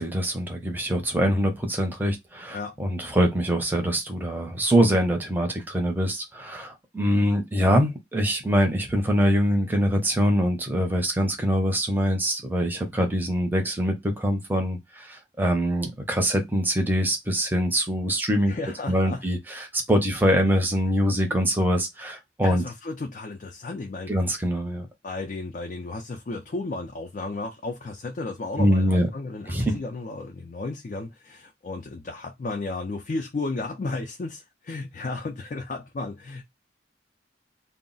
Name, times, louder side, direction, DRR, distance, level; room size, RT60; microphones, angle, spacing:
voice 1, 0.0-18.5 18.9-22.6 24.1-24.9 28.6-29.1 29.5-29.8, equal, 10° right, 0.6 m, -24 dB
voice 2, 18.4-19.2 22.4-24.1 25.0-36.4, left 3 dB, 45° left, 0.4 m, -33 dB
2.3 x 2.0 x 3.7 m
head